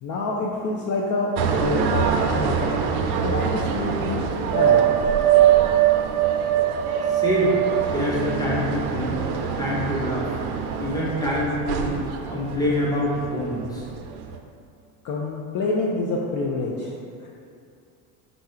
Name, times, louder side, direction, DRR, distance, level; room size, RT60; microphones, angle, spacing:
voice 1, 0.0-2.8 3.2-4.2 4.5-5.0 15.0-16.9 17.2-17.3, left 3 dB, 45° left, -2 dB, 0.5 m, -27 dB
sound 1, 1.4-13.6 14.0-14.4, right 9 dB, 65° right, 0.5 m, -23 dB
voice 2, 7.1-7.6 7.9-9.2 9.6-10.3 10.8-11.9 12.3-13.8, equal, 10° left, -6 dB, 1.0 m, -25 dB
3.9 x 2.3 x 4.3 m, 2.4 s
supercardioid pair, 95°, 42 cm